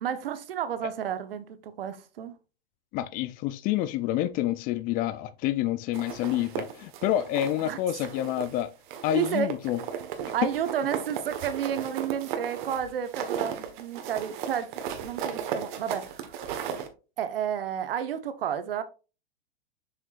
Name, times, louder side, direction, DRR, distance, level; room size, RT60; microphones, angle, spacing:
voice 1, 0.0-2.3 7.6-7.8 9.1-9.5 10.2-16.4 17.2-18.8, right 9 dB, 70° right, 1.1 m, -31 dB
voice 2, 2.9-8.7 9.0-9.8, left 13 dB, 30° left, 0.5 m, -28 dB
sound 1, 5.9-7.7 8.0-8.6 8.9-16.9, right 8 dB, 55° right, 1.5 m, -35 dB
7.1 x 5.5 x 2.5 m
hypercardioid pair, 115°, 29 cm